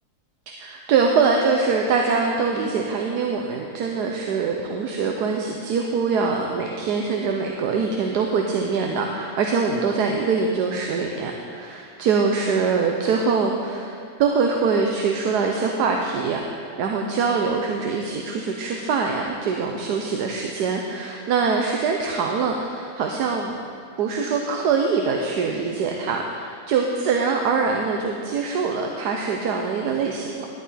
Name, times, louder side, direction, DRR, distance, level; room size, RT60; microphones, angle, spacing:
voice 1, 0.6-23.5 24.0-30.5, right 5 dB, 80° right, 2 dB, 1.3 m, -23 dB
11.0 x 11.0 x 4.2 m, 2.3 s
omnidirectional pair, 1.7 m